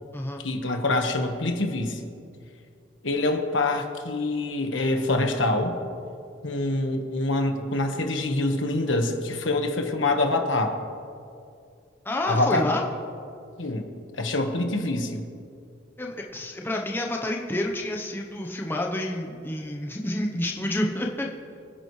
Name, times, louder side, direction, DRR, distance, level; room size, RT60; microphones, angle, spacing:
voice 1, 0.4-2.0 3.0-5.7 6.4-10.8 12.3-12.7 13.6-13.9 14.2-15.2, left 2 dB, 70° left, 5 dB, 1.4 m, -25 dB
voice 2, 12.0-12.8 16.0-21.3, left 1 dB, 10° left, 1 dB, 0.9 m, -29 dB
27.0 x 10.0 x 3.2 m, 2.4 s
head